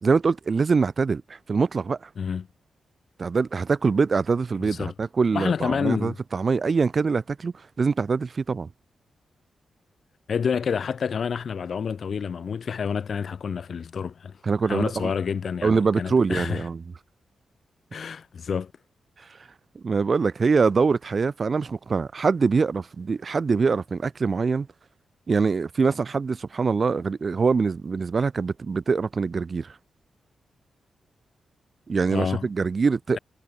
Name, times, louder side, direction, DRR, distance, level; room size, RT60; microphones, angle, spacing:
voice 1, 0.0-2.1 3.2-8.7 14.4-15.1 15.6-16.8 19.8-24.7 25.3-29.8 31.9-33.2, right 5 dB, 50° right, 0.4 m, -24 dB
voice 2, 2.2-2.5 4.6-4.9 5.3-6.1 10.3-14.4 14.6-16.7 17.9-18.7 32.1-32.4, left 6 dB, 65° left, 1.4 m, -28 dB
supercardioid pair, 40°, 0 cm